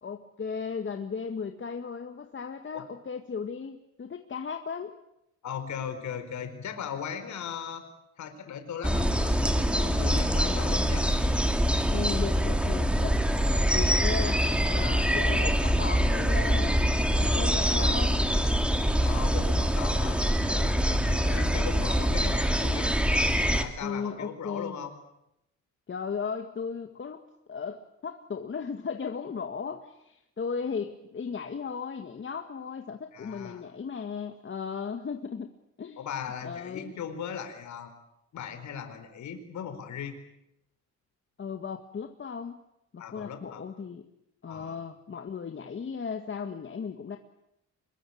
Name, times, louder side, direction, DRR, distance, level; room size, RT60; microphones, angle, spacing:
voice 1, 0.0-4.9 11.9-13.2 13.7-14.4 14.7-16.8 17.1-18.2 21.2-21.7 23.8-24.8 25.9-35.5 35.8-36.1 36.4-37.0 41.4-42.6 42.9-44.0 44.4-47.2, left 6 dB, 40° left, 6 dB, 2.0 m, -36 dB
voice 2, 5.4-7.9 8.2-11.1 19.0-20.2 20.5-23.0 23.5-24.9 33.1-33.6 36.0-37.9 38.3-40.2 43.0-43.6 44.5-44.8, left 7 dB, 70° left, 7 dB, 4.6 m, -38 dB
sound 1, 8.8-23.6, equal, 5° right, 2.9 m, -24 dB
25.5 x 22.0 x 8.8 m, 0.84 s
cardioid pair, 90°, 30 cm